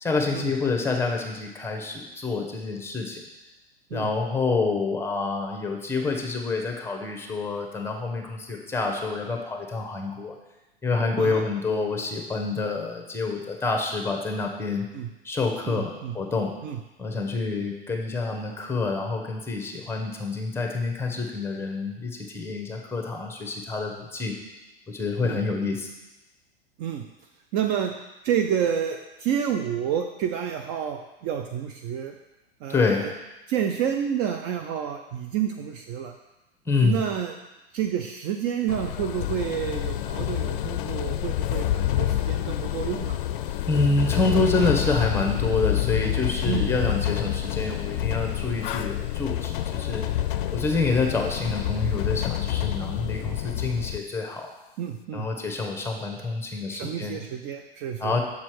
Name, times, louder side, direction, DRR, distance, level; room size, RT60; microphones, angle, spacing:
voice 1, 0.0-3.2 3.9-10.4 10.8-14.9 15.2-16.5 17.0-24.3 24.9-25.9 32.7-33.1 36.7-37.0 43.7-50.1 50.3-54.5 55.1-57.2 58.0-58.2, left 3 dB, 10° left, 2 dB, 1.0 m, -27 dB
voice 2, 15.7-16.1 16.6-16.8 25.2-25.4 26.8-27.0 27.5-27.9 28.2-32.1 32.6-33.1 33.5-36.1 36.8-37.3 37.7-43.2 46.5-46.8 54.8-55.3 56.7-58.1, right 9 dB, 35° right, 5 dB, 0.4 m, -29 dB
sound 1, 38.7-54.0, left 12 dB, 55° left, 0.5 m, -28 dB
7.0 x 4.3 x 4.7 m, 1.0 s
hypercardioid pair, 105°, 31 cm